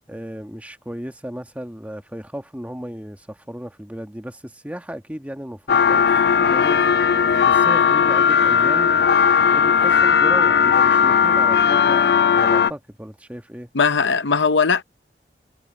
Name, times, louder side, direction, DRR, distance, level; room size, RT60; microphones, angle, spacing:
voice 1, 0.1-6.9 7.4-8.9 9.5-13.7, equal, 10° right, 1.3 m, -34 dB
sound 1, 5.7-12.7, left 7 dB, 60° left, 0.4 m, -17 dB
voice 2, 13.7-14.8, left 5 dB, 85° left, 0.8 m, -18 dB
head